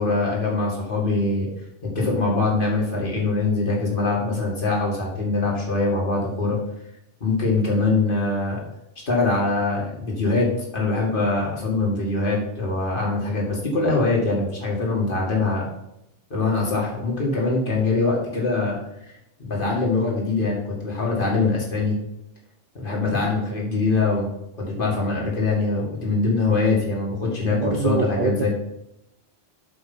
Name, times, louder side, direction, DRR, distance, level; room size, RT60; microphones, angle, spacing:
voice 1, 0.0-1.5 1.8-6.6 7.2-8.6 9.1-10.5 10.7-15.7 16.3-18.8 19.4-21.9 22.7-24.3 24.6-28.5, left 3 dB, 45° left, -2 dB, 2.3 m, -23 dB
voice 2, 27.4-28.5, right 6 dB, 55° right, 8 dB, 0.6 m, -25 dB
8.1 x 5.1 x 5.5 m, 0.84 s
omnidirectional pair, 1.2 m